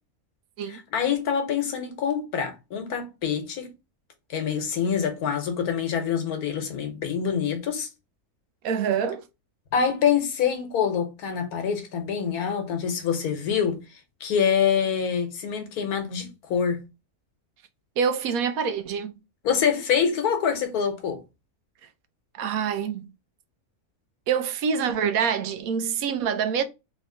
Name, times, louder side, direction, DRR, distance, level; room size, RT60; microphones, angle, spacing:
voice 1, 0.7-3.7 4.3-7.9 9.7-16.8 19.4-21.2, left 7 dB, 85° left, 1.4 m, -26 dB
voice 2, 8.6-9.2 18.0-19.2 22.3-23.1 24.3-26.6, right 7 dB, 80° right, 1.0 m, -26 dB
3.5 x 3.0 x 3.7 m
omnidirectional pair, 1.5 m